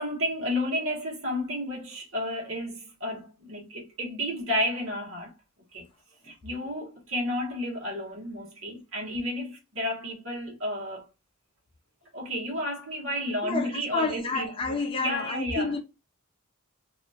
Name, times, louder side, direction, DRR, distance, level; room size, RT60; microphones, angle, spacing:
voice 1, 0.0-5.3 5.7-5.9 6.2-11.0 12.1-15.7, left 1 dB, 70° right, 1.3 m, -32 dB
voice 2, 13.4-15.8, left 3 dB, 25° left, 0.5 m, -30 dB
2.8 x 2.3 x 2.7 m
head